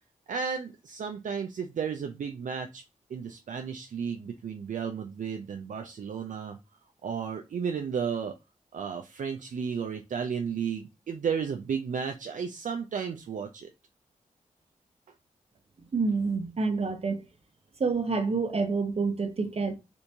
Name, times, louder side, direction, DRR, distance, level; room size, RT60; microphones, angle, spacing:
voice 1, 0.3-2.8 3.1-6.6 7.0-8.3 8.7-13.7, right 6 dB, 65° right, 0.4 m, -33 dB
voice 2, 15.9-17.2 17.8-19.7, right 4 dB, 45° right, 0.8 m, -28 dB
3.4 x 2.9 x 2.7 m
cardioid pair, 50°, 14 cm